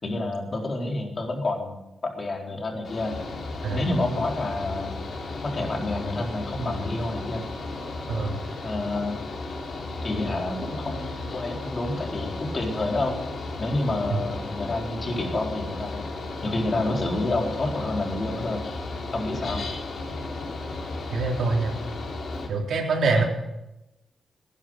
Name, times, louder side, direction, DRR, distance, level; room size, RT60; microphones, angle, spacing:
voice 1, 0.0-3.2 3.7-5.0 5.4-7.4 8.6-9.3 10.0-13.2 13.6-16.0 16.4-18.6 19.1-19.7 23.1-23.2, left 2 dB, 40° left, 1 dB, 4.4 m, -29 dB
Mechanical fan, 2.8-22.5, left 2 dB, 60° left, 3.7 m, -34 dB
voice 2, 8.1-8.4 21.1-21.8 22.5-23.2, right 3 dB, 80° right, 0 dB, 3.8 m, -24 dB
19.0 x 11.0 x 6.6 m, 0.92 s
cardioid pair, 85°, 0 cm